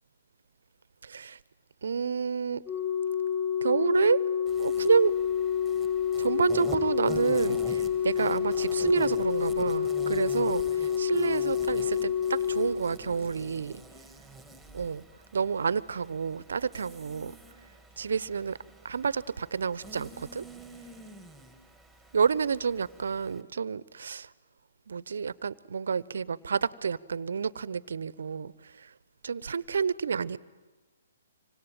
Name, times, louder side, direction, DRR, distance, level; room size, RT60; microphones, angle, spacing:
voice 1, 1.0-1.4 1.8-2.6 3.6-4.2 4.6-5.1 6.2-13.8 14.7-15.0 15.3-17.3 18.0-18.6 18.8-20.4 22.1-24.3 24.9-28.9 29.2-30.4, right 6 dB, 65° right, 20 dB, 0.8 m, -29 dB
Organ, 2.7-13.5 14.7-14.9, left 8 dB, 15° left, 2.3 m, -28 dB
Insect, 4.5-23.4, right 1 dB, ahead, 2.7 m, -47 dB
26.0 x 25.5 x 9.0 m, 1.3 s
figure-of-eight pair, 130°, 0 cm